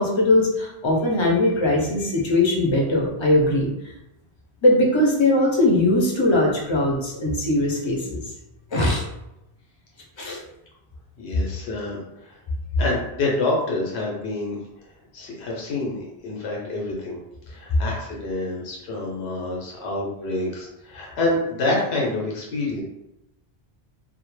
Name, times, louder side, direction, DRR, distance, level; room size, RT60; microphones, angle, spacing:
voice 1, 0.0-3.7 4.6-8.2 8.7-9.0 10.2-10.4, left 1 dB, 40° left, -2 dB, 0.4 m, -20 dB
voice 2, 11.2-12.0 12.2-12.4 12.8-14.6 15.1-17.2 17.5-22.8, left 2 dB, 90° left, -2 dB, 1.0 m, -27 dB
2.3 x 2.1 x 3.0 m, 0.87 s
omnidirectional pair, 1.1 m